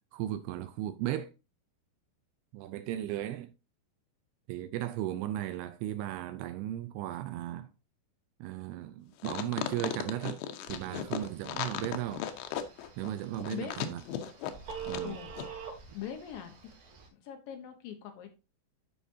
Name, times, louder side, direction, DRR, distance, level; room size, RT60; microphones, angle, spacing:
voice 1, 0.1-1.3 2.5-3.5 4.5-7.7 8.4-10.4 10.7-12.3 13.0-14.0 14.9-15.2, right 13 dB, 80° right, 2.4 m, -36 dB
sound 1, 9.2-15.1 15.4-15.5, left 10 dB, 90° left, 3.1 m, -36 dB
Telephone, 10.7-17.1, right 7 dB, 55° right, 3.3 m, -46 dB
voice 2, 15.0-15.3 15.9-16.5 16.9-18.3, left 9 dB, 70° left, 2.4 m, -42 dB
13.0 x 5.0 x 2.6 m
omnidirectional pair, 4.9 m